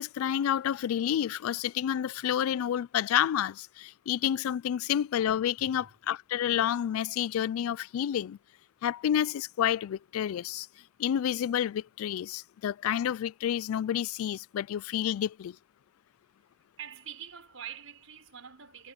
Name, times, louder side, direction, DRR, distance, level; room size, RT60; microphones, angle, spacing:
voice 1, 0.0-8.4 8.8-10.7 11.0-15.6, left 10 dB, 80° left, 0.3 m, -29 dB
voice 2, 5.6-5.9 16.8-18.9, right 9 dB, 75° right, 5.1 m, -45 dB
head